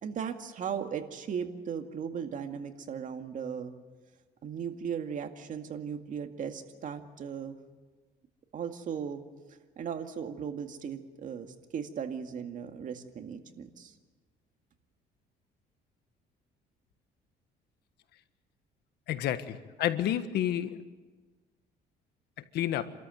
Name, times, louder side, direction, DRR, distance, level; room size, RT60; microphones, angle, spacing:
voice 1, 0.0-3.7 4.4-7.6 8.5-9.2 9.8-13.9, right 7 dB, 50° right, 6 dB, 2.1 m, -37 dB
voice 2, 19.1-20.8 22.5-22.9, left 11 dB, 75° left, 11 dB, 1.5 m, -30 dB
27.5 x 13.5 x 9.3 m, 1.3 s
cardioid pair, 110°, 17 cm